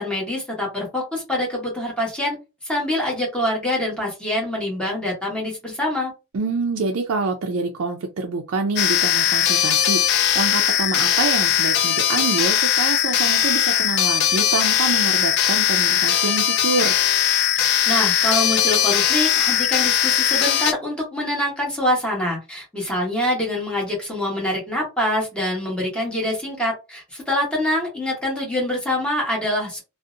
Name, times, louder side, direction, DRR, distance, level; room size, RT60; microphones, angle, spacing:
voice 1, 0.0-2.4 2.6-6.1 17.6-29.8, left 1 dB, 5° left, -3 dB, 1.1 m, -25 dB
voice 2, 6.3-16.9, right 4 dB, 80° right, 2 dB, 0.4 m, -26 dB
sound 1, 8.8-20.7, left 10 dB, 55° left, 0.3 m, -19 dB
2.6 x 2.0 x 2.5 m, 0.28 s
head